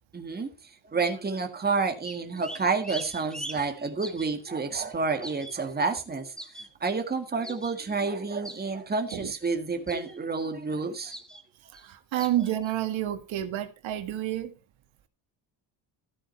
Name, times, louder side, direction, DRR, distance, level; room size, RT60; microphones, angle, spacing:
voice 1, 0.1-0.5 0.9-6.3 6.8-11.1 12.1-12.2, right 4 dB, 20° right, 1.9 m, -29 dB
sound 1, 2.0-4.3 4.9-7.0 7.4-7.7 8.4-8.6 9.1-9.5 9.9-10.4 11.1-11.4 11.7-11.9 12.2-12.7, right 1 dB, ahead, 1.7 m, -41 dB
voice 2, 11.7-14.5, right 12 dB, 85° right, 1.9 m, -29 dB
14.0 x 8.7 x 4.4 m
cardioid pair, 145°, 46 cm